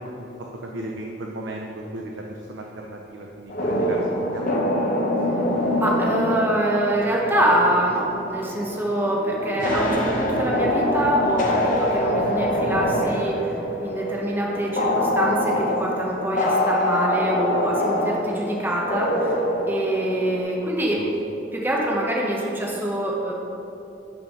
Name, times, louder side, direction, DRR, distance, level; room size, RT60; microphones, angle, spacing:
voice 1, 0.2-4.6 9.5-9.7 21.0-21.1, right 1 dB, 85° right, -1 dB, 0.6 m, -36 dB
sound 1, 3.5-20.4, left 1 dB, 50° left, 0.8 m, -25 dB
voice 2, 5.8-13.5 13.8-19.3 19.7-21.0 21.5-23.3, right 1 dB, 10° right, -3 dB, 0.8 m, -25 dB
6.0 x 5.4 x 5.3 m, 2.9 s
head